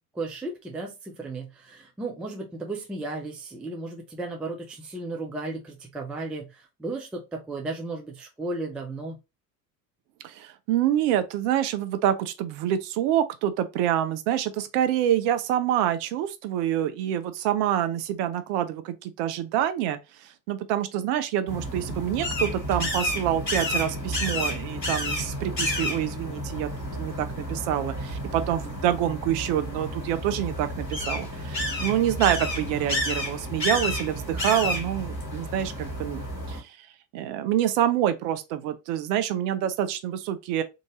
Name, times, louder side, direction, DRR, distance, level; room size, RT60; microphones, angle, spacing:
voice 1, 0.1-9.2, right 2 dB, ahead, 0.3 m, -35 dB
voice 2, 10.2-26.7 27.0-36.9 37.1-40.6, right 11 dB, 45° right, 0.6 m, -27 dB
sound 1, 21.5-36.6, left 1 dB, 90° left, 1.1 m, -31 dB
3.6 x 2.5 x 3.0 m
figure-of-eight pair, 65°, 49 cm